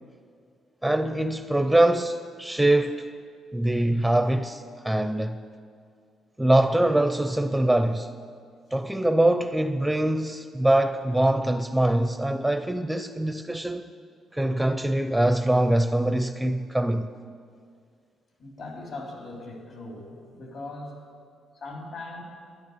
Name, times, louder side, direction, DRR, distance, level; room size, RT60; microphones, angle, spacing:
voice 1, 0.8-3.1 3.5-5.4 6.4-8.1 8.7-13.9 14.3-17.1, right 1 dB, 5° right, 0.5 m, -23 dB
voice 2, 18.4-21.0 21.5-22.2, left 2 dB, 60° left, 3.5 m, -39 dB
12.0 x 10.5 x 6.8 m
cardioid pair, 90°, 0 cm